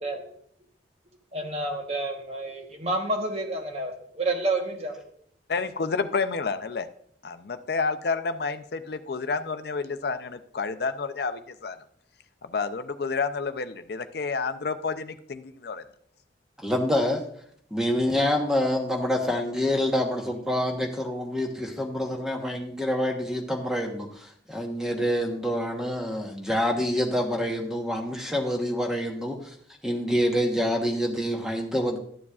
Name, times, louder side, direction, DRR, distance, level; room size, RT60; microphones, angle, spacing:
voice 1, 1.3-5.0, right 2 dB, 35° right, 3 dB, 1.1 m, -29 dB
voice 2, 5.5-6.9 7.2-11.8 12.4-15.8, left 4 dB, 60° left, 10 dB, 0.5 m, -30 dB
voice 3, 16.6-17.2 17.7-29.5 29.8-32.0, equal, 5° right, 2 dB, 1.0 m, -27 dB
12.0 x 7.1 x 2.4 m, 0.63 s
head